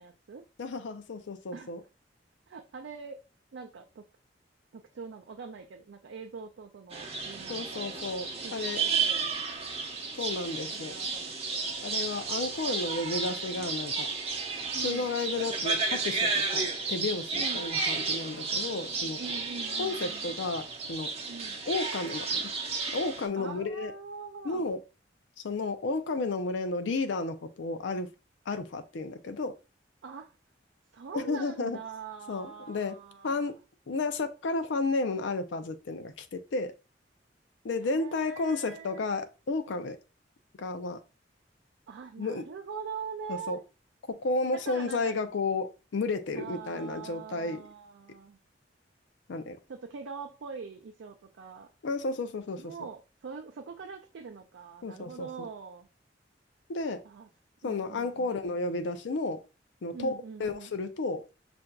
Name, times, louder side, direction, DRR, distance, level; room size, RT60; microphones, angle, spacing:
voice 1, 0.0-0.5 1.5-1.7 2.5-3.2 3.5-4.1 4.7-8.1 8.4-9.3 10.7-12.0 14.7-15.1 17.3-17.7 19.2-20.3 21.3-21.6 23.4-24.7 30.0-30.4 30.9-33.5 37.8-39.1 41.9-43.6 44.5-45.2 46.4-48.4 49.7-51.7 52.6-55.9 57.0-57.3 57.6-58.3 59.9-60.7, right 5 dB, 75° right, 0.4 m, -43 dB
voice 2, 0.6-1.8 7.5-8.8 10.2-10.9 11.8-14.1 14.8-19.2 19.8-21.1 21.7-22.4 22.9-23.9 24.4-24.8 25.4-28.1 28.5-29.6 31.1-31.8 32.3-33.0 33.2-33.6 33.9-36.7 37.6-40.0 40.6-41.0 42.2-42.4 43.3-43.6 44.1-47.6 49.3-49.6 51.8-52.7 54.8-55.5 56.7-57.0 57.6-59.4 59.8-61.2, left 3 dB, 70° left, 0.5 m, -32 dB
sound 1, 6.9-23.3, right 4 dB, 35° right, 0.8 m, -32 dB
5.7 x 2.6 x 2.2 m
head